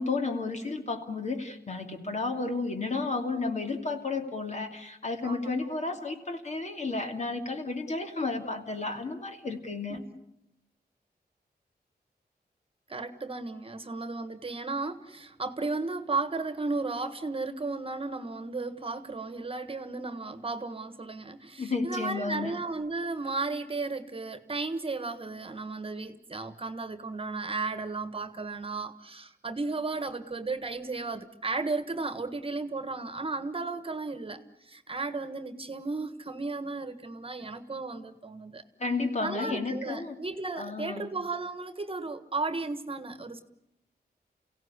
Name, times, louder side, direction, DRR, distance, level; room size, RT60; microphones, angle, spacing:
voice 1, 0.0-10.0 21.6-22.6 38.8-40.2 40.6-41.1, left 3 dB, 45° left, 4 dB, 2.9 m, -32 dB
voice 2, 12.9-38.6 39.2-43.4, right 3 dB, 35° right, 11 dB, 1.5 m, -34 dB
29.5 x 17.0 x 9.7 m, 0.87 s
wide cardioid pair, 125°, 16 cm